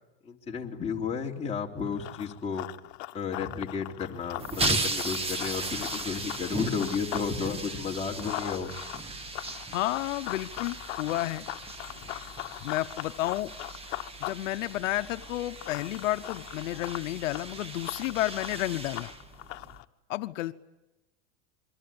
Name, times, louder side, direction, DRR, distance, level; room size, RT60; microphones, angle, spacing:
voice 1, 0.2-2.7 3.1-8.7, left 5 dB, 15° left, -1 dB, 3.3 m, -33 dB
Run, 1.8-7.3 7.6-19.8, left 19 dB, 65° left, 1.3 m, -40 dB
sound 1, 4.4-19.8, right 3 dB, 15° right, 1.6 m, -37 dB
voice 2, 9.7-11.4 12.6-13.5 14.2-19.1 20.1-20.5, left 16 dB, 85° left, 11 dB, 1.0 m, -31 dB
27.5 x 23.5 x 8.8 m, 0.99 s
supercardioid pair, 135°, 37 cm